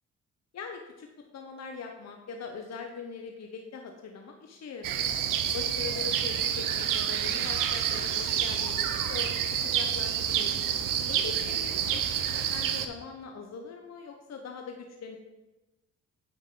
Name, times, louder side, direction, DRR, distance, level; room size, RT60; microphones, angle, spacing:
voice 1, 0.5-1.1 1.3-5.1 5.5-10.6 11.1-12.0 12.3-15.2, left 5 dB, 50° left, 3 dB, 0.9 m, -41 dB
sound 1, 4.8-12.9, right 9 dB, 70° right, 0.7 m, -28 dB
8.7 x 5.2 x 3.8 m, 1.1 s
supercardioid pair, 50°, 34 cm